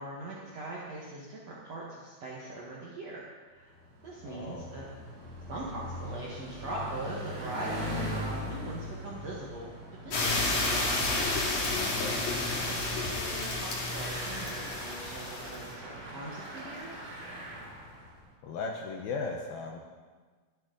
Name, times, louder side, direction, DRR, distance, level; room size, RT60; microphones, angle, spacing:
voice 1, 0.0-3.7 4.0-4.9 5.5-9.7 10.0-11.0 11.9-16.9, right 2 dB, 75° right, -4 dB, 1.5 m, -41 dB
Bicycle, 3.6-18.2, equal, 50° right, 5.1 m, -41 dB
voice 2, 4.3-4.7 11.7-12.2 18.4-19.8, left 4 dB, 80° left, 1 dB, 2.1 m, -37 dB
sound 1, 10.1-15.7, left 2 dB, 45° left, 2.6 m, -31 dB
22.0 x 9.6 x 3.9 m, 1.4 s
omnidirectional pair, 5.5 m